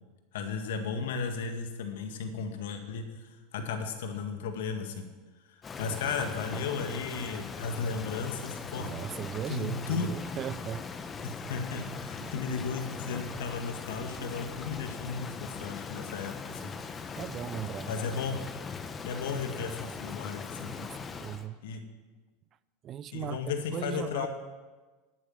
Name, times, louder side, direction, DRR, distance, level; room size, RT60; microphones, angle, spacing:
voice 1, 0.3-3.0 3.5-5.1 5.5-8.9 9.5-10.1 11.2-16.7 17.8-18.4 19.0-20.8 21.6-21.8 23.1-24.3, left 5 dB, 75° left, 1.8 m, -35 dB
Rain, 5.6-21.5, left 5 dB, 25° left, 1.1 m, -40 dB
voice 2, 6.5-6.9 8.8-10.9 11.2-11.3 12.2-12.4 16.4-16.9 17.2-17.9 20.6-21.6 22.8-23.4 23.7-24.3, right 10 dB, 40° right, 0.5 m, -38 dB
12.5 x 8.9 x 7.2 m
hypercardioid pair, 90°, 0 cm